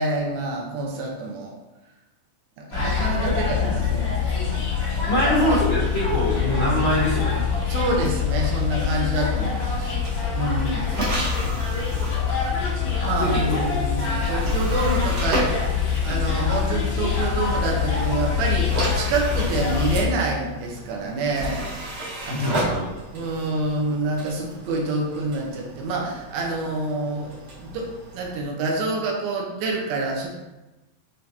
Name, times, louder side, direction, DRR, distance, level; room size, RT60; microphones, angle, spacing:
voice 1, 0.0-1.5 2.6-4.2 4.9-5.2 7.7-10.0 10.3-11.3 13.0-15.7 16.0-21.7 22.3-22.6 23.1-27.3 27.6-27.9 28.1-30.3, right 2 dB, 80° right, -1 dB, 2.6 m, -27 dB
sound 1, 2.7-20.0, left 6 dB, 55° left, 1.7 m, -24 dB
voice 2, 5.0-7.4 13.2-13.6 22.3-22.9, equal, 80° left, -11 dB, 1.1 m, -23 dB
sound 2, 9.9-16.9 17.9-28.4, right 1 dB, 60° right, 1.6 m, -33 dB
7.1 x 2.7 x 2.8 m, 1.0 s
omnidirectional pair, 4.3 m